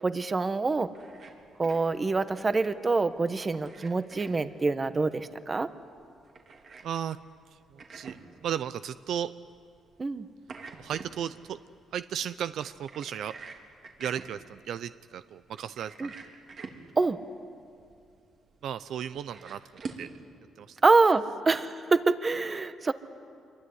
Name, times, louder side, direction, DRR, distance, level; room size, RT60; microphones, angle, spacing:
voice 1, 0.0-0.9 1.6-5.7 10.0-10.3 16.0-16.1 17.0-17.2 20.8-22.9, right 3 dB, 30° right, 12 dB, 1.3 m, -25 dB
sound 1, 0.6-20.1, right 4 dB, 55° right, 3.4 m, -48 dB
voice 2, 6.8-7.2 7.7-8.2 8.4-9.3 10.8-11.6 11.9-13.3 14.0-16.3 18.6-19.6 20.0-20.1 20.6-20.8, right 9 dB, 70° right, 13 dB, 0.6 m, -35 dB
26.5 x 23.0 x 9.6 m, 2.4 s
cardioid pair, 90°, 0 cm